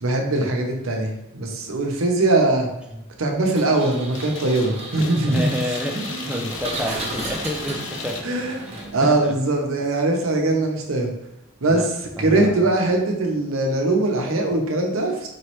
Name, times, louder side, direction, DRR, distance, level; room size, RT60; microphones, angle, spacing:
voice 1, 0.0-2.7 3.2-5.8 6.2-6.3 6.9-7.0 8.2-8.6 8.9-11.1 11.6-11.9 12.2-15.3, right 2 dB, 85° right, 2 dB, 0.8 m, -21 dB
Engine, 3.5-9.2, right 2 dB, 30° right, 0.9 m, -35 dB
sound 1, 4.1-9.2, left 5 dB, 65° left, 0.5 m, -36 dB
voice 2, 5.3-8.3 9.0-9.4 11.7-11.9 12.2-12.6, equal, 5° right, 1 dB, 0.4 m, -29 dB
4.6 x 3.1 x 3.0 m, 0.88 s
head